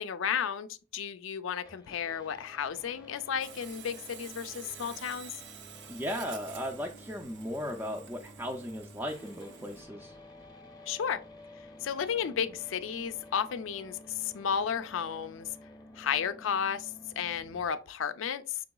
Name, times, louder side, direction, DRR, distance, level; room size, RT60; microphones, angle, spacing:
voice 1, 0.0-5.4 10.9-11.2 11.8-15.5 16.0-16.9 17.2-18.6, left 7 dB, 85° left, 0.4 m, -33 dB
sound 1, 1.6-17.6, left 1 dB, 20° left, 0.7 m, -52 dB
Sawing, 3.4-9.8, right 7 dB, 65° right, 0.5 m, -49 dB
voice 2, 5.9-10.2, equal, 10° right, 0.3 m, -36 dB
6.0 x 3.8 x 2.3 m
head